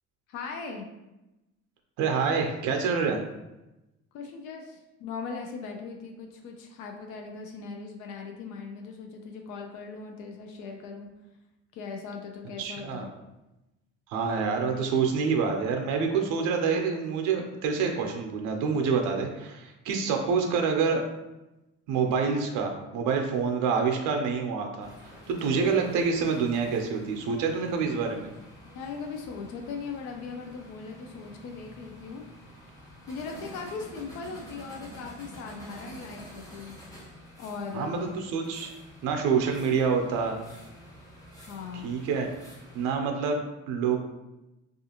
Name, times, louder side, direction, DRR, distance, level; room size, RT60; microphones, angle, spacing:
voice 1, 0.3-0.9 4.1-11.1 11.7-13.1 28.6-32.2 33.1-36.8 37.4-38.2 41.5-41.9, left 5 dB, 80° left, 3 dB, 0.5 m, -39 dB
voice 2, 2.0-3.2 12.6-13.1 14.1-21.0 21.9-28.3 37.7-38.7 39.0-40.4 41.7-42.3 42.7-44.0, right 5 dB, 85° right, 3 dB, 0.5 m, -27 dB
sound 1, 24.8-42.9, equal, 10° left, 0.7 m, -49 dB
2.4 x 2.4 x 2.8 m, 0.98 s
cardioid pair, 140°, 30 cm